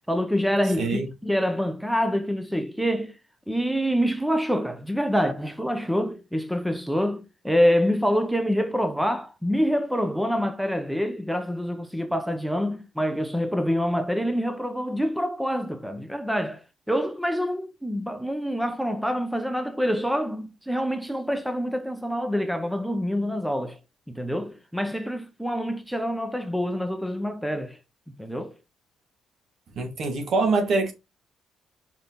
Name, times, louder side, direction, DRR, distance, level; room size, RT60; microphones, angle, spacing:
voice 1, 0.1-3.1 3.5-23.8 24.1-27.8 28.2-28.5, equal, ahead, 1.0 m, -26 dB
voice 2, 0.8-1.1 29.8-30.9, right 3 dB, 65° right, 2.2 m, -24 dB
5.5 x 4.8 x 4.0 m
cardioid pair, 90°, 0 cm